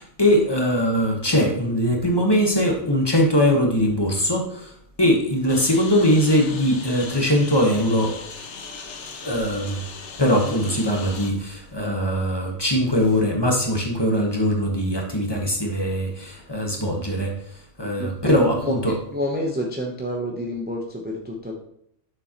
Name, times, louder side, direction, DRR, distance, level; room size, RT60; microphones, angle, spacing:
voice 1, 0.0-4.7 5.0-8.2 9.2-9.8 10.2-18.9, equal, 20° left, 1 dB, 1.2 m, -21 dB
Engine, 5.5-11.3, left 5 dB, 75° left, 1.2 m, -38 dB
voice 2, 18.0-21.5, equal, 10° right, -1 dB, 0.7 m, -29 dB
7.0 x 6.7 x 2.9 m, 0.70 s
omnidirectional pair, 1.2 m